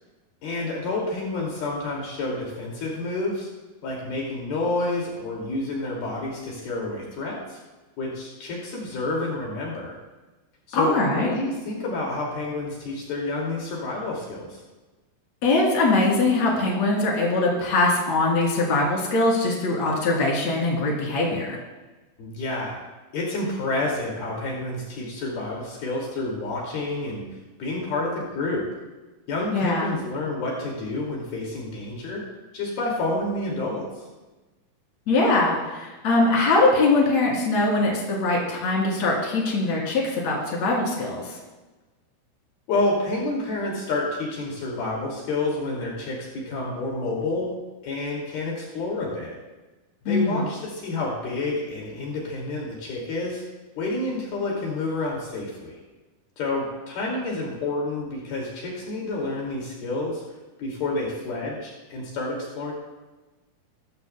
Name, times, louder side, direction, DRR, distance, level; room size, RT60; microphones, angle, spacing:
voice 1, 0.4-3.5 3.8-7.6 8.0-10.0 10.7-14.6 22.2-22.7 23.1-27.3 27.6-28.6 29.3-32.2 32.5-34.0 42.7-47.5 47.8-49.4 50.1-53.4 53.8-55.8 56.4-60.2 60.6-62.7, left 2 dB, 70° left, -3 dB, 4.3 m, -29 dB
voice 2, 10.7-11.3 15.4-21.6 29.5-30.0 35.1-41.4 50.1-50.4, left 2 dB, 45° left, -3 dB, 4.2 m, -22 dB
20.5 x 14.5 x 2.2 m, 1.2 s
omnidirectional pair, 4.6 m